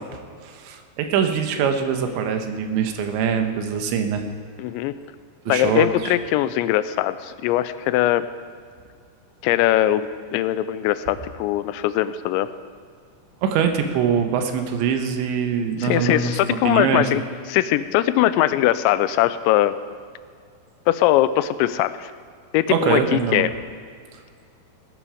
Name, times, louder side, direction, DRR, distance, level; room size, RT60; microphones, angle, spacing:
voice 1, 0.4-4.2 5.5-6.1 13.4-16.3 16.6-17.1 22.7-23.5, right 7 dB, 85° right, 6 dB, 3.4 m, -23 dB
voice 2, 4.6-4.9 5.5-8.3 9.4-12.5 15.8-17.2 17.5-19.8 20.9-22.1 22.5-23.5, left 14 dB, 90° left, 13 dB, 2.9 m, -21 dB
19.0 x 11.0 x 5.0 m, 2.1 s
omnidirectional pair, 5.1 m